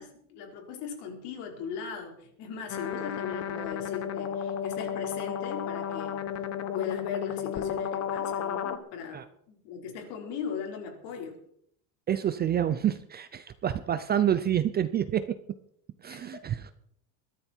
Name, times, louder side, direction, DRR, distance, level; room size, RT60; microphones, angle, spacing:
voice 1, 0.0-6.2 6.7-11.4 16.1-16.5, left 6 dB, 60° left, 2 dB, 4.7 m, -38 dB
sound 1, 2.7-8.8, left 8 dB, 35° left, 1.3 m, -33 dB
voice 2, 12.1-15.2 16.0-16.7, right 10 dB, 20° right, 12 dB, 0.5 m, -28 dB
22.0 x 13.5 x 4.5 m, 0.69 s
cardioid pair, 170°, 45 cm